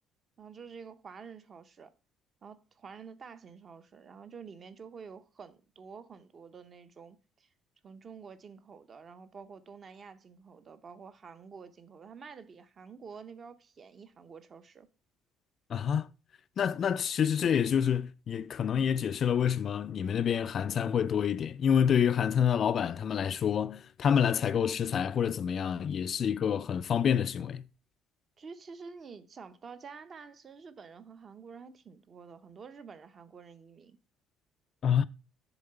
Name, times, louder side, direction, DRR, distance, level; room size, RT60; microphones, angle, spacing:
voice 1, 0.4-1.9 2.4-7.5 7.8-14.9 28.4-34.0, right 5 dB, 35° right, 0.7 m, -49 dB
voice 2, 15.7-16.1 16.6-27.6 34.8-35.0, left 8 dB, 40° left, 0.3 m, -27 dB
7.1 x 3.9 x 6.6 m
cardioid pair, 145°, 0 cm